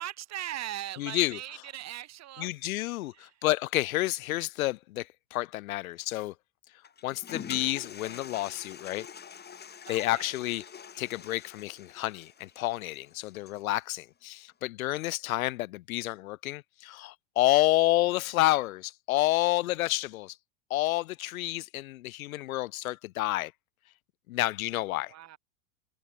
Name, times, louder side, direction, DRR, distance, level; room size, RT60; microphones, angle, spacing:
voice 1, 0.0-2.5 9.9-10.3 25.1-25.4, right 13 dB, 40° right, 6.0 m, -39 dB
voice 2, 1.0-1.6 2.4-6.3 7.0-9.1 9.9-10.7 11.0-20.4 20.7-23.5 24.3-25.1, left 17 dB, 80° left, 0.7 m, -29 dB
Toilet flush, 6.8-13.8, left 7 dB, 25° left, 3.7 m, -46 dB
hypercardioid pair, 110°, 42 cm